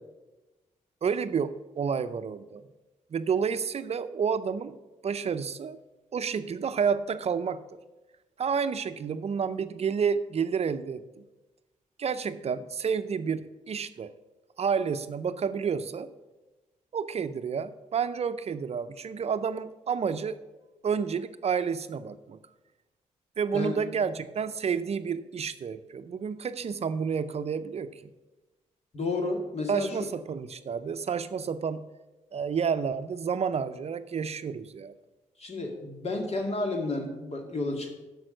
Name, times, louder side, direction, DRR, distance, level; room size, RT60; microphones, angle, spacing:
voice 1, 1.0-2.6 3.1-4.8 5.0-5.8 6.1-7.6 8.4-11.2 12.0-14.1 14.6-16.1 16.9-20.4 20.8-22.4 23.4-28.1 29.7-31.8 32.3-34.9, right 6 dB, 50° right, 12 dB, 0.5 m, -30 dB
voice 2, 28.9-30.1 35.4-37.9, left 2 dB, 50° left, 3 dB, 2.1 m, -31 dB
6.9 x 6.2 x 7.7 m, 1.1 s
cardioid pair, 65°, 14 cm